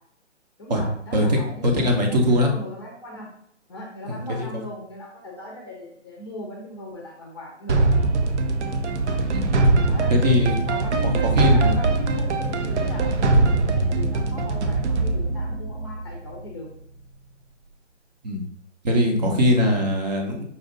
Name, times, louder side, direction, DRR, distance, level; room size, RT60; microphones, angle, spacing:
voice 1, 0.6-3.3 3.7-7.8 9.8-10.2 10.6-16.7 19.6-19.9, left 1 dB, 20° left, -1 dB, 0.6 m, -38 dB
voice 2, 1.6-2.5 4.1-4.5 9.3-9.5 10.1-10.6 11.0-11.9 18.2-18.4 18.8-20.4, left 1 dB, 35° right, 1 dB, 0.8 m, -21 dB
sound 1, 7.7-16.5, right 2 dB, 65° right, 0.7 m, -22 dB
5.4 x 2.5 x 3.7 m, 0.68 s
hypercardioid pair, 150°, 37 cm